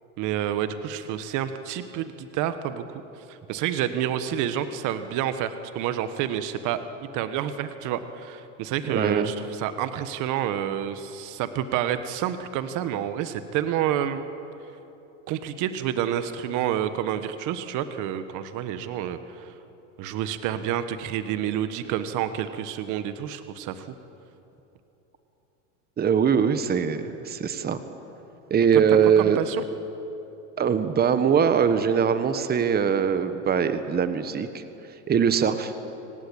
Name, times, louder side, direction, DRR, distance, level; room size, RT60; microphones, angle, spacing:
voice 1, 0.2-3.0 3.3-6.8 7.1-14.2 15.3-19.5 20.0-23.9 28.9-29.6, right 10 dB, 50° right, 10 dB, 1.5 m, -29 dB
voice 2, 8.9-9.3 26.0-27.8 28.5-29.4 30.6-34.6 35.1-35.7, right 7 dB, 25° right, 10 dB, 1.4 m, -22 dB
25.5 x 18.0 x 8.8 m, 3.0 s
supercardioid pair, 115°, 38 cm